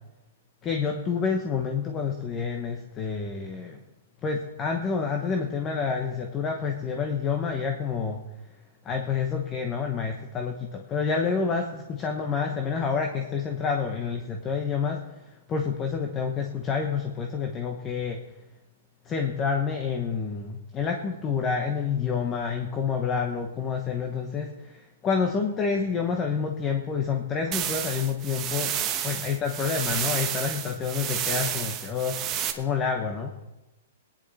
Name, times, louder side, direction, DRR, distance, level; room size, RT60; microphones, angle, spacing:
voice 1, 0.6-3.8 4.2-8.2 8.8-18.3 19.0-28.8 29.0-32.2 32.5-33.3, left 5 dB, 20° left, 3 dB, 1.1 m, -28 dB
sound 1, 27.5-32.5, right 10 dB, 20° right, 1.1 m, -30 dB
19.0 x 10.0 x 4.3 m, 1.0 s
hypercardioid pair, 155°, 0 cm